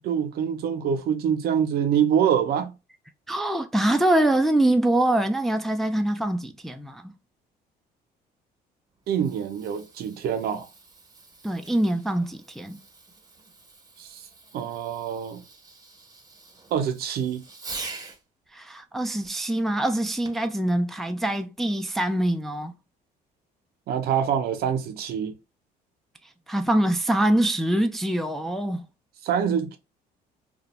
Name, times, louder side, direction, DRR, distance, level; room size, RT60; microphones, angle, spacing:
voice 1, 0.0-2.7 9.1-10.7 14.0-14.3 14.5-15.4 16.7-17.4 23.9-25.4 29.2-29.8, right 8 dB, 65° right, 0.6 m, -25 dB
voice 2, 3.3-7.1 11.4-12.8 18.5-22.7 26.5-28.9, right 1 dB, ahead, 0.3 m, -24 dB
Fireworks, 8.9-18.2 20.2-20.6 21.3-21.4, right 3 dB, 20° right, 0.7 m, -45 dB
2.4 x 2.1 x 2.9 m
cardioid pair, 110°, 17 cm